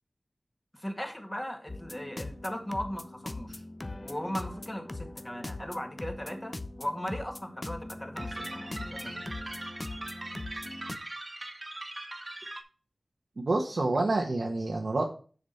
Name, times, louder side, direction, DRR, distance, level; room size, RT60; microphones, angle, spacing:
voice 1, 0.7-3.6 4.0-9.2 13.9-14.0, equal, 15° left, 3 dB, 2.0 m, -38 dB
sound 1, 1.7-11.0, left 2 dB, 35° left, 0.9 m, -41 dB
sound 2, 8.2-12.6, right 2 dB, 40° right, 1.2 m, -41 dB
voice 2, 13.4-15.0, right 2 dB, 75° right, 0 dB, 1.2 m, -28 dB
6.8 x 4.9 x 5.7 m, 0.39 s
wide cardioid pair, 45°, 0 cm